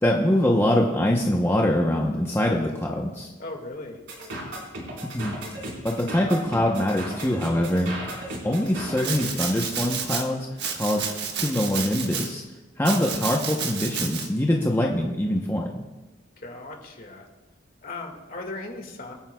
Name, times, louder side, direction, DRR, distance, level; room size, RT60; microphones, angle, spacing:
voice 1, 0.0-3.3 5.1-5.4 5.8-8.2 8.4-10.5 10.7-11.0 11.4-12.4 12.8-15.7, left 1 dB, 15° left, -1 dB, 0.8 m, -23 dB
voice 2, 3.4-4.0 16.4-17.3 17.8-19.1, left 2 dB, 50° left, 2 dB, 1.9 m, -37 dB
sound 1, 4.1-9.3, right 1 dB, 75° right, 4.5 m, -35 dB
Domestic sounds home sounds, 9.0-10.2 10.6-12.3 12.8-14.3, right 6 dB, 60° right, 1.4 m, -30 dB
25.5 x 9.2 x 2.3 m, 1.1 s
head